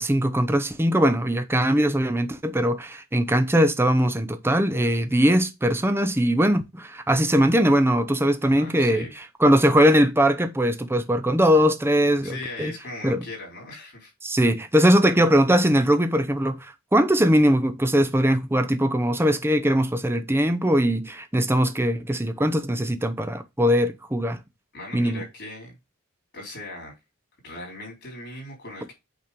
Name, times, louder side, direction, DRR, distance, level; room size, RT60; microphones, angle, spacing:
voice 1, 0.0-9.1 9.4-12.7 13.0-13.2 14.2-24.4 24.9-25.2, equal, 10° right, 0.7 m, -21 dB
voice 2, 8.4-9.1 12.2-14.1 24.7-25.8 26.3-27.0 27.4-28.9, left 2 dB, 55° left, 3.9 m, -38 dB
8.6 x 3.0 x 5.2 m
head